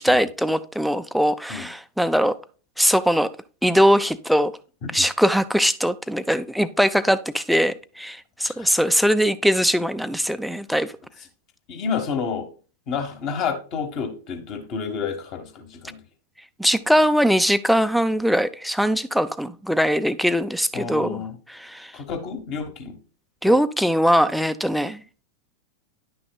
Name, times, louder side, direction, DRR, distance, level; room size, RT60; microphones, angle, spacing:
voice 1, 0.0-2.4 2.8-3.3 3.6-4.5 4.9-10.9 16.6-21.2 21.5-21.9 23.4-25.0, equal, ahead, 0.5 m, -21 dB
voice 2, 11.7-12.5 12.9-16.0 20.7-21.3 21.9-23.0 23.5-23.6, left 6 dB, 40° left, 1.4 m, -30 dB
10.5 x 6.0 x 2.3 m
figure-of-eight pair, 90°, 0 cm